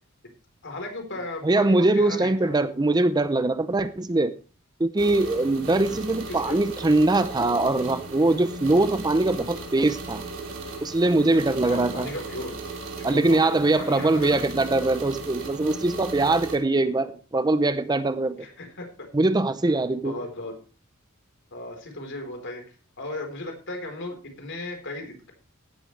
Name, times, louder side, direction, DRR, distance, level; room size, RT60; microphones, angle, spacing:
voice 1, 0.6-2.6 5.8-6.0 6.3-6.6 11.6-12.6 13.0-14.4 18.4-19.1 20.0-20.5 21.5-22.6 23.0-25.3, left 2 dB, 60° left, 4.1 m, -36 dB
voice 2, 1.2-4.3 4.8-10.2 10.8-12.1 13.0-18.5 19.1-20.2, right 2 dB, 20° right, 0.6 m, -22 dB
sound 1, 5.0-16.6, right 2 dB, 60° right, 3.4 m, -37 dB
16.0 x 11.0 x 3.3 m
head